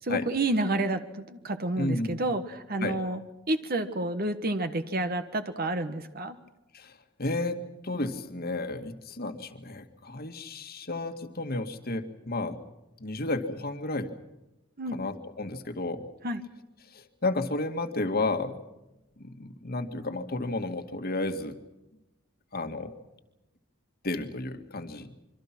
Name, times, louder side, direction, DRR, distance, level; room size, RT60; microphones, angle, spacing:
voice 1, 0.0-3.2 3.5-6.4 14.8-15.0 16.2-16.4, right 2 dB, 50° right, 8 dB, 1.4 m, -29 dB
voice 2, 1.8-2.2 2.8-3.0 6.7-12.6 13.0-14.1 14.9-16.1 16.9-18.6 19.2-21.6 22.5-22.9 24.0-25.2, left 2 dB, 50° left, 7 dB, 2.1 m, -32 dB
26.0 x 24.5 x 6.1 m, 0.95 s
head